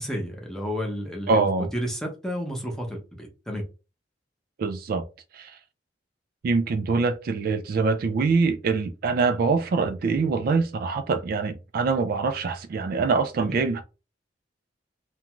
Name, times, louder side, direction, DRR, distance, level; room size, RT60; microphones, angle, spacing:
voice 1, 0.0-1.5 1.7-3.6 13.4-13.6, equal, 5° left, 0.7 m, -31 dB
voice 2, 1.3-1.7 4.6-5.0 5.3-5.6 6.4-13.8, right 4 dB, 55° right, 0.3 m, -24 dB
2.5 x 2.2 x 2.9 m
head